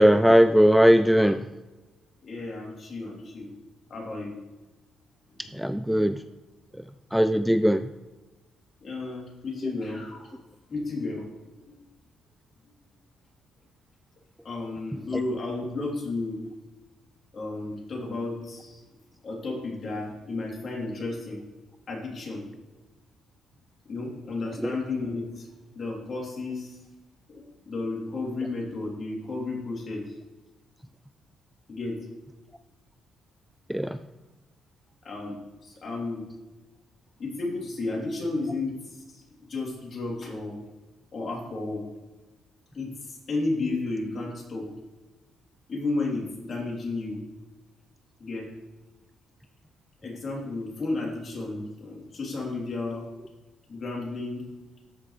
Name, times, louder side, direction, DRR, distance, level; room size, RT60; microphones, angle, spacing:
voice 1, 0.0-1.5 5.5-6.2 7.1-7.8 24.6-24.7 33.7-34.0, equal, ahead, 11 dB, 0.3 m, -19 dB
voice 2, 2.2-3.5 3.9-4.3 5.4-5.5 8.8-10.4 10.7-11.3 11.7-11.8 14.4-16.4 17.3-18.8 19.2-21.4 21.9-22.4 23.9-25.5 25.7-26.8 27.3-30.1 31.7-32.0 35.0-36.3 37.2-39.2 39.5-40.6 41.1-41.8 42.7-44.7 45.7-47.2 48.2-48.5 50.0-53.1 53.7-54.4, left 3 dB, 45° left, -2 dB, 3.3 m, -33 dB
13.0 x 5.9 x 3.3 m, 1.1 s
cardioid pair, 90°, 0 cm